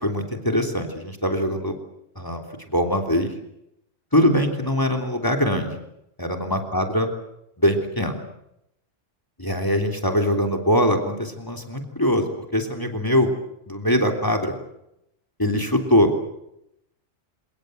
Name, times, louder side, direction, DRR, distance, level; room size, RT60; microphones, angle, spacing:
voice 1, 0.0-1.7 2.2-2.4 2.7-3.3 4.1-5.8 6.2-7.1 7.6-8.2 9.4-13.3 13.7-14.5 15.4-16.1, equal, 15° left, 5 dB, 3.2 m, -22 dB
29.0 x 19.5 x 7.9 m, 0.82 s
omnidirectional pair, 1.3 m